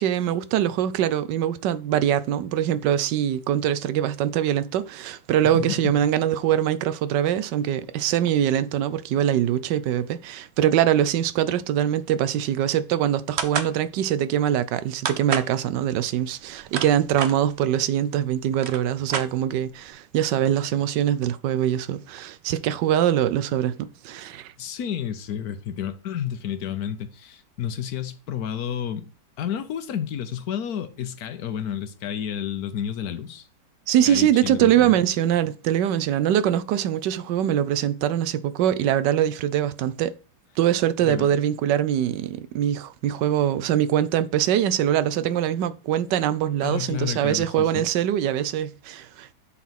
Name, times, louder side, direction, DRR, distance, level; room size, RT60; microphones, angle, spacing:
voice 1, 0.0-24.5 33.9-40.1 40.6-49.3, right 10 dB, 85° right, 1.3 m, -23 dB
voice 2, 5.4-6.0 24.6-29.0 29.4-33.5 34.0-34.9 41.0-41.4 46.6-47.8, left 9 dB, 65° left, 1.4 m, -31 dB
sound 1, 13.4-13.7 15.0-15.5 16.4-17.3 18.2-18.3 18.5-19.7, right 6 dB, 50° right, 0.9 m, -28 dB
8.2 x 4.2 x 5.8 m
omnidirectional pair, 1.8 m